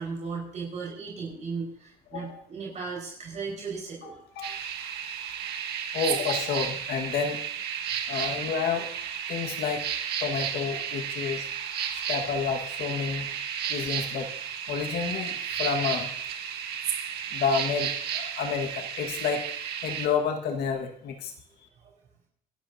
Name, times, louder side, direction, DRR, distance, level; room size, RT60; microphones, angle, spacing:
voice 1, 0.0-4.1 8.2-8.3 21.8-21.9, right 4 dB, 45° right, -3 dB, 4.9 m, -36 dB
sound 1, 4.4-20.1, right 8 dB, 75° right, 1.7 m, -33 dB
voice 2, 5.9-7.4 8.1-8.9 9.3-9.8 10.2-11.5 11.9-13.3 13.7-14.3 14.7-16.1 17.3-19.4 19.8-21.3, left 6 dB, 70° left, 3 dB, 1.7 m, -30 dB
25.5 x 12.5 x 2.8 m, 0.64 s
cardioid pair, 110°, 17 cm